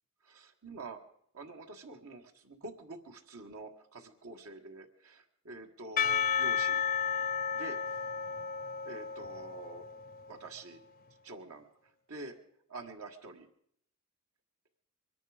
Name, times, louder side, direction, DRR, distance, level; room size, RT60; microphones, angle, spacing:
voice 1, 0.2-1.0 1.3-6.8 7.5-7.8 8.8-9.9 10.3-10.8 11.2-11.7 12.1-12.4 12.7-13.5, right 2 dB, 90° right, 3 dB, 1.7 m, -46 dB
Percussion / Church bell, 6.0-10.4, left 7 dB, 45° left, 0.5 m, -33 dB
24.0 x 11.0 x 5.0 m, 0.69 s
head